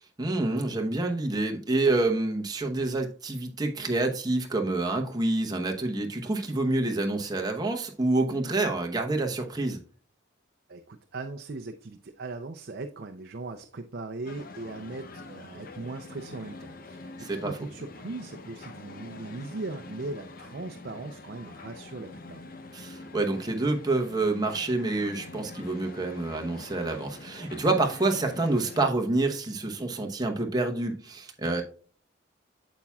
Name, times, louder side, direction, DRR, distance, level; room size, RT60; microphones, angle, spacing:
voice 1, 0.2-9.8 17.2-17.6 22.7-31.6, right 2 dB, 20° right, 0.9 m, -27 dB
voice 2, 10.7-22.4, right 3 dB, 50° right, 0.5 m, -39 dB
sound 1, 14.3-28.9, left 3 dB, 45° left, 0.7 m, -45 dB
8.8 x 7.1 x 2.3 m
head